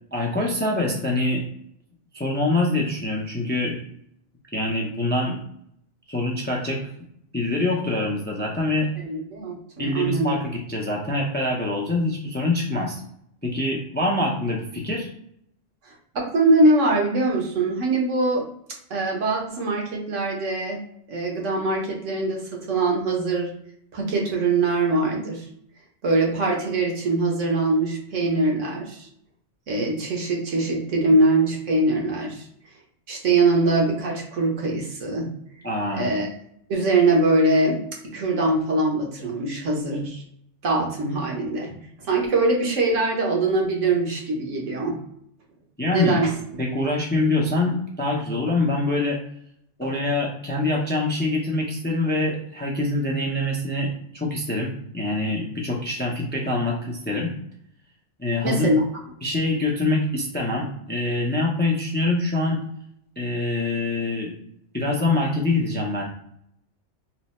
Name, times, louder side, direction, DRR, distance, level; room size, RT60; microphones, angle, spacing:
voice 1, 0.1-1.4 2.1-3.7 4.5-5.4 6.1-6.8 7.3-8.9 9.8-13.0 13.4-15.1 35.6-36.1 45.8-46.2 46.6-49.2 49.8-57.3 58.2-58.8 59.2-62.6 63.2-64.3 64.7-66.0, left 2 dB, 15° left, -2 dB, 0.3 m, -25 dB
voice 2, 9.0-10.3 16.1-18.4 18.9-20.8 21.1-23.5 23.9-25.4 26.0-29.1 29.7-32.4 33.1-35.3 35.9-36.3 36.7-37.8 38.1-40.2 40.6-45.0 45.9-46.3 49.8-49.9 58.4-58.8, right 2 dB, 85° right, -1 dB, 1.3 m, -22 dB
3.2 x 2.1 x 4.1 m, 0.71 s
omnidirectional pair, 1.2 m